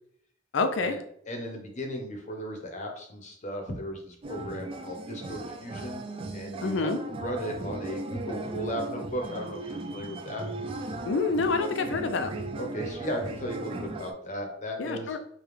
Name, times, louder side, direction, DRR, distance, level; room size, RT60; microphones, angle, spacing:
voice 1, 0.5-1.0 6.6-7.0 11.1-12.3 14.8-15.2, left 4 dB, 70° left, 8 dB, 0.5 m, -27 dB
voice 2, 1.3-10.5 12.5-15.2, equal, 40° left, 3 dB, 0.8 m, -36 dB
sound 1, 4.2-14.1, right 2 dB, 30° right, 0.3 m, -37 dB
5.0 x 2.3 x 3.2 m, 0.67 s
head